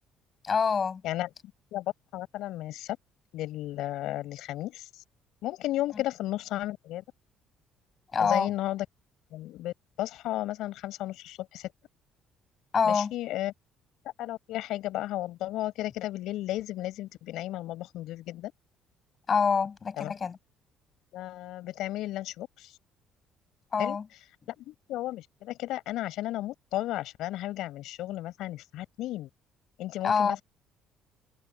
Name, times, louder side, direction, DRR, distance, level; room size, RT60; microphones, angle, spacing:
voice 1, 0.4-1.0 8.1-8.5 12.7-13.1 19.3-20.4 23.7-24.0 30.0-30.4, left 6 dB, 30° left, 7.5 m, -26 dB
voice 2, 1.7-3.0 3.3-5.0 5.4-7.0 8.2-8.9 9.3-11.7 12.8-13.5 14.2-18.5 20.0-20.1 21.1-22.8 23.8-24.0 24.5-29.3 29.8-30.4, left 15 dB, 75° left, 7.0 m, -34 dB
cardioid pair, 125°, 0 cm